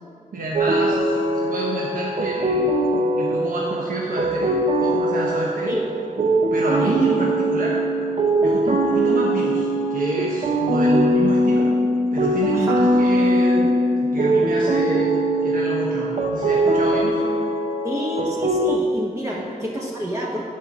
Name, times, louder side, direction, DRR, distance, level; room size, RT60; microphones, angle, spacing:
voice 1, 0.3-2.8 3.1-5.8 6.5-7.8 8.4-11.7 12.1-13.8 14.1-15.1 15.4-17.2 19.3-19.4, right 2 dB, 80° right, -5 dB, 1.1 m, -28 dB
sound 1, 0.5-18.8, right 1 dB, 50° right, 0.7 m, -21 dB
voice 2, 12.5-12.9 17.8-20.4, equal, 20° right, -4 dB, 0.9 m, -28 dB
8.5 x 4.7 x 7.0 m, 2.5 s
wide cardioid pair, 105°, 14 cm